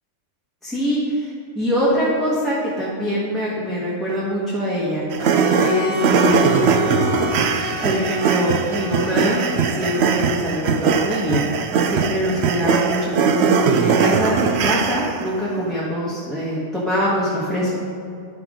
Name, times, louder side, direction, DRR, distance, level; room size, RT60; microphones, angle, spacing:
voice 1, 0.6-5.0 5.6-6.8 7.8-17.8, equal, ahead, -8 dB, 1.3 m, -23 dB
sound 1, 5.1-15.3, right 6 dB, 65° right, 0.8 m, -20 dB
Bowed string instrument, 5.2-10.2, left 4 dB, 75° left, 1.2 m, -29 dB
10.5 x 5.9 x 3.8 m, 2.4 s
omnidirectional pair, 1.3 m